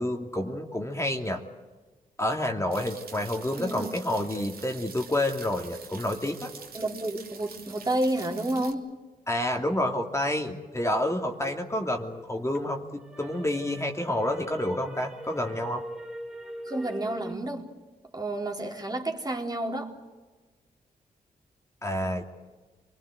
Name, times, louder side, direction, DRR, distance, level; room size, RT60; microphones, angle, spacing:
voice 1, 0.0-1.4 2.2-6.5 9.3-15.8 21.8-22.2, left 1 dB, 20° left, 2.8 m, -29 dB
sound 1, 2.7-8.7, right 6 dB, 70° right, 2.8 m, -46 dB
voice 2, 3.5-3.9 6.7-8.9 16.7-17.7 18.1-19.9, right 1 dB, 25° right, 3.7 m, -30 dB
sound 2, 11.1-12.6 13.0-17.3, equal, 5° right, 2.8 m, -43 dB
26.0 x 21.5 x 8.1 m
cardioid pair, 55°, 16 cm